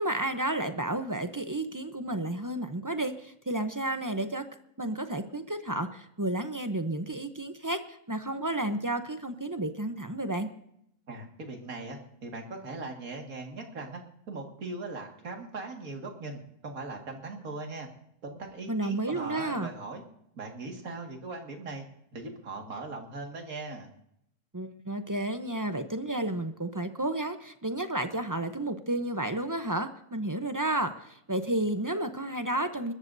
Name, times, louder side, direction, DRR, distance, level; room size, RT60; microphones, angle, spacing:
voice 1, 0.0-4.4 4.8-10.5 18.7-19.7 24.5-32.9, right 1 dB, 25° right, 8 dB, 0.5 m, -31 dB
voice 2, 11.1-14.0 14.3-17.9 18.2-20.0 20.3-21.8 22.1-23.9, right 3 dB, 65° right, 2 dB, 2.5 m, -39 dB
28.5 x 14.0 x 2.7 m, 0.76 s
omnidirectional pair, 1.6 m